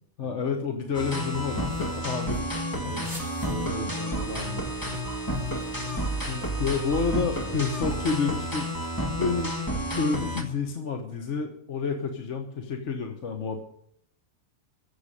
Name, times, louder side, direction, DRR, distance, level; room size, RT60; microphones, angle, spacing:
voice 1, 0.2-2.5 2.7-3.0 6.3-8.7 9.1-13.6, left 5 dB, 55° left, 4 dB, 1.5 m, -29 dB
sound 1, 0.9-10.4, equal, 15° left, 1.8 m, -31 dB
sound 2, 1.2-4.0 4.3-4.4 4.7-7.8, right 2 dB, 35° right, 5.3 m, -48 dB
voice 2, 3.4-5.4 5.9-6.1 7.4-7.5, right 2 dB, 75° left, -3 dB, 5.8 m, -39 dB
sound 3, 3.8-3.9 4.4-5.4 5.9-7.0 7.3-9.9, right 6 dB, 80° right, 1.5 m, -44 dB
15.0 x 7.0 x 9.9 m, 0.71 s
omnidirectional pair, 1.5 m